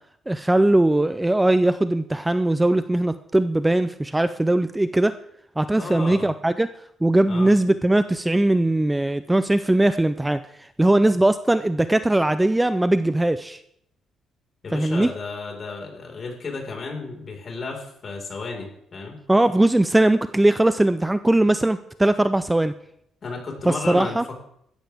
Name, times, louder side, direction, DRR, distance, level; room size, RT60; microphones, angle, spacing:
voice 1, 0.3-5.1 5.6-6.7 7.0-10.4 10.8-13.6 14.7-15.1 19.3-22.7 23.7-24.2, right 1 dB, 10° right, 12 dB, 0.5 m, -20 dB
voice 2, 5.7-6.3 7.3-7.5 14.6-19.2 23.2-24.2, left 3 dB, 45° left, 1 dB, 4.9 m, -33 dB
16.5 x 13.5 x 3.6 m, 0.72 s
cardioid pair, 90°, 0 cm